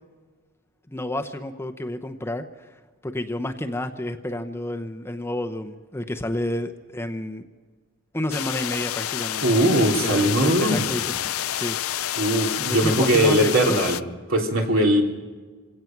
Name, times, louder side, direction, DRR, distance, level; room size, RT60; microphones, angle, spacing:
voice 1, 0.9-2.8 3.0-7.4 8.1-11.1 11.5-11.8 12.6-13.8, left 1 dB, 10° left, 6 dB, 0.8 m, -30 dB
sound 1, 8.3-14.0, left 12 dB, 90° left, 0.5 m, -28 dB
voice 2, 9.4-10.9 12.2-14.0 14.3-15.0, right 1 dB, 65° right, 1 dB, 3.3 m, -20 dB
25.0 x 17.5 x 6.0 m, 1.4 s
head